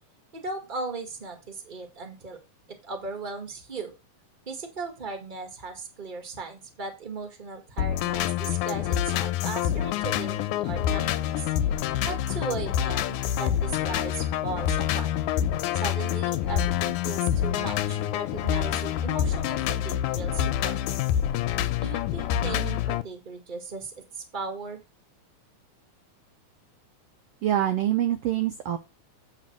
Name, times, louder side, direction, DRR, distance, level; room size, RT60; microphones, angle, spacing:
voice 1, 0.3-2.4 2.7-3.9 4.4-11.5 12.0-15.1 15.7-21.0 21.8-24.8, right 4 dB, 20° right, 4 dB, 1.5 m, -37 dB
sound 1, 7.8-23.0, left 11 dB, 90° left, 2.1 m, -27 dB
voice 2, 27.4-28.8, right 12 dB, 75° right, 7 dB, 1.5 m, -25 dB
8.7 x 4.2 x 6.0 m, 0.26 s
omnidirectional pair, 3.4 m